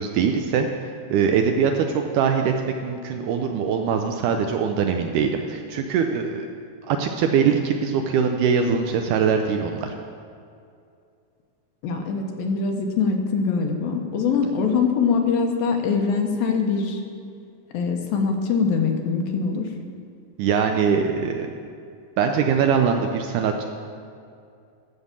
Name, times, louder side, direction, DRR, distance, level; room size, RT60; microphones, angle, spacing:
voice 1, 0.0-6.5 6.8-10.0 20.4-21.5 22.2-23.6, right 6 dB, 80° right, 4 dB, 1.9 m, -22 dB
voice 2, 11.8-17.0 17.7-19.7, left 5 dB, 85° left, 3 dB, 2.8 m, -23 dB
13.5 x 5.5 x 7.3 m, 2.4 s
omnidirectional pair, 4.1 m